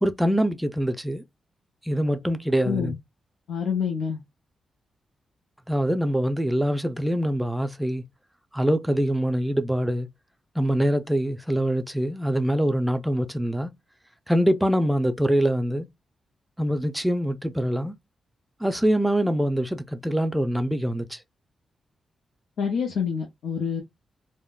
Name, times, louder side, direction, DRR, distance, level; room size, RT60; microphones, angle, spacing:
voice 1, 0.0-1.2 1.8-2.9 5.7-8.0 8.5-10.1 10.6-13.7 14.3-15.9 16.6-18.0 18.6-21.2, equal, 5° right, 0.4 m, -24 dB
voice 2, 2.6-3.0 3.5-4.2 22.6-23.8, left 6 dB, 85° left, 0.6 m, -27 dB
3.5 x 2.1 x 2.2 m
wide cardioid pair, 115°, 0 cm